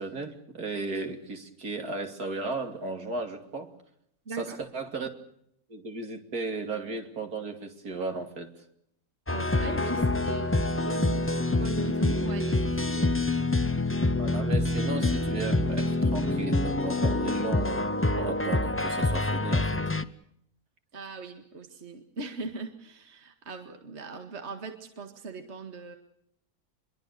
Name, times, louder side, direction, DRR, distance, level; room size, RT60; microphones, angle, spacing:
voice 1, 0.0-3.7 4.4-5.1 5.7-8.5 9.9-10.1 14.2-19.8, right 3 dB, 80° right, 5 dB, 3.3 m, -35 dB
voice 2, 4.3-4.6 9.3-13.1 20.9-26.0, right 3 dB, 45° right, 5 dB, 2.2 m, -40 dB
sound 1, 9.3-20.0, left 2 dB, 10° left, 0.6 m, -26 dB
26.5 x 22.5 x 6.8 m, 0.73 s
omnidirectional pair, 1.6 m